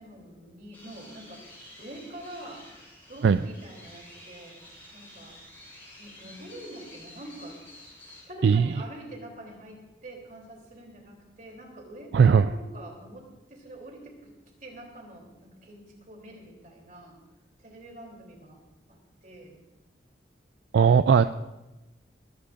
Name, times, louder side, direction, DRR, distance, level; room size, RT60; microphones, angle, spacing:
voice 1, 0.0-1.4 1.8-2.6 3.1-4.6 4.9-5.4 6.0-7.6 8.3-14.3 14.6-17.2 17.6-18.6 18.9-19.6, right 1 dB, 45° right, 0 dB, 3.2 m, -45 dB
sound 1, 0.7-8.2, left 1 dB, 10° left, 6.4 m, -50 dB
voice 2, 12.1-12.5 20.7-21.3, right 6 dB, 70° right, 12 dB, 0.3 m, -18 dB
21.5 x 15.5 x 2.5 m, 1.0 s
head